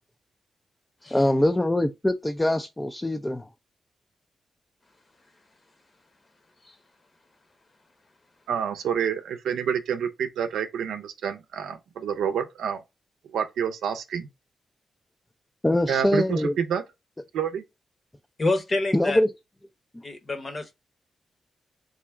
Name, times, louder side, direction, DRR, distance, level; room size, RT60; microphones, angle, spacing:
voice 1, 1.1-3.5 15.6-16.5 18.9-19.3, left 1 dB, 15° left, 0.4 m, -23 dB
voice 2, 8.5-12.8 13.3-14.3 15.9-16.8 17.3-17.6, right 8 dB, 80° right, 0.5 m, -28 dB
voice 3, 18.4-19.2 20.0-20.7, left 2 dB, 45° left, 0.9 m, -27 dB
3.8 x 2.1 x 3.4 m
supercardioid pair, 45°, 0 cm